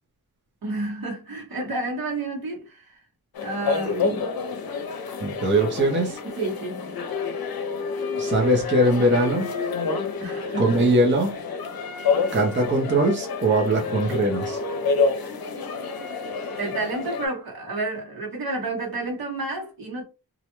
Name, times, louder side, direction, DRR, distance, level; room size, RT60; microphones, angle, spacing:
voice 1, 0.6-3.0 3.4-4.3 6.2-7.1 10.2-10.8 16.6-20.0, right 2 dB, 70° right, 1.1 m, -30 dB
sound 1, 3.3-17.3, left 4 dB, 70° left, 0.6 m, -28 dB
voice 2, 5.2-6.2 8.2-9.5 10.6-11.3 12.3-14.6, right 1 dB, 30° right, 0.6 m, -21 dB
2.4 x 2.1 x 2.9 m
wide cardioid pair, 140°, 37 cm